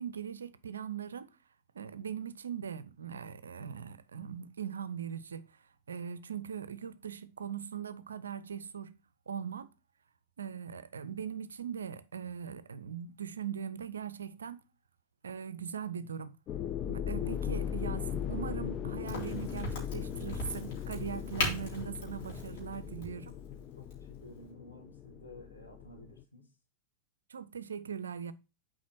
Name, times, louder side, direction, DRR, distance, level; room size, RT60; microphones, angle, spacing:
voice 1, 0.0-1.4 1.7-5.5 5.9-8.9 9.3-9.7 10.4-14.6 15.2-16.4 16.8-23.3 27.3-28.3, right 8 dB, 70° right, 0.5 m, -40 dB
sound 1, 16.5-26.2, left 9 dB, 35° left, 0.5 m, -38 dB
Crack, 19.1-24.5, left 2 dB, 50° left, 3.5 m, -39 dB
voice 2, 23.8-26.5, left 1 dB, 80° left, 2.0 m, -53 dB
7.2 x 4.9 x 4.3 m
figure-of-eight pair, 90°, 0 cm